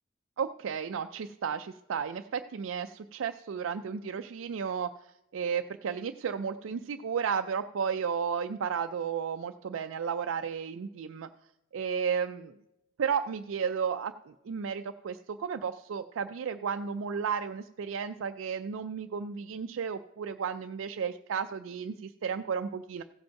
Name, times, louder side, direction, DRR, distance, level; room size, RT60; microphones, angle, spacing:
voice 1, 0.4-11.3 11.7-12.6 13.0-23.0, right 6 dB, 90° right, 8 dB, 0.4 m, -33 dB
15.5 x 5.2 x 5.7 m, 0.88 s
head